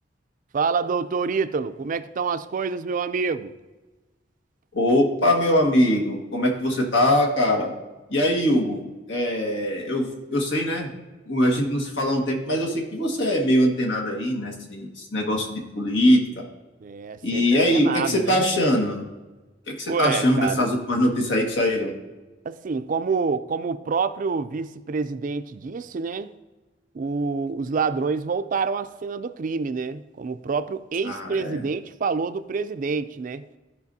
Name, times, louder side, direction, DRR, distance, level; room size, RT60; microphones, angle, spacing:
voice 1, 0.5-3.5 16.8-18.4 19.9-20.8 22.4-26.3 26.9-33.4, right 5 dB, 45° right, 0.4 m, -27 dB
voice 2, 4.7-7.7 8.1-8.8 9.1-10.9 11.3-16.4 17.2-19.0 19.7-21.9 31.0-31.6, left 1 dB, 80° left, 1.6 m, -22 dB
13.0 x 5.0 x 2.7 m
head